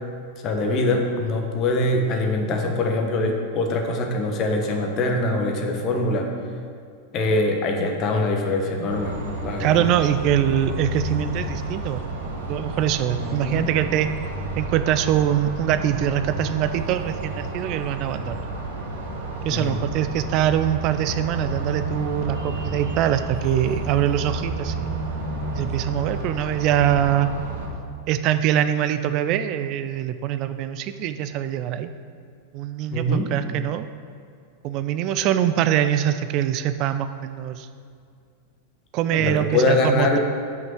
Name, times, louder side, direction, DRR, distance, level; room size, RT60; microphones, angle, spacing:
voice 1, 0.4-6.3 7.1-9.2 9.4-9.9 13.2-13.7 19.5-19.8 32.9-33.3 39.1-40.2, left 2 dB, 35° left, 2 dB, 1.1 m, -23 dB
sound 1, 8.9-27.7, right 2 dB, 60° right, 1.2 m, -31 dB
voice 2, 9.6-12.0 12.5-14.1 14.6-18.5 19.4-25.0 25.5-27.3 28.1-31.9 32.5-33.9 34.6-37.7 38.9-40.2, right 11 dB, 40° right, 11 dB, 0.4 m, -23 dB
5.9 x 5.4 x 6.9 m, 2.3 s
figure-of-eight pair, 90°, 0 cm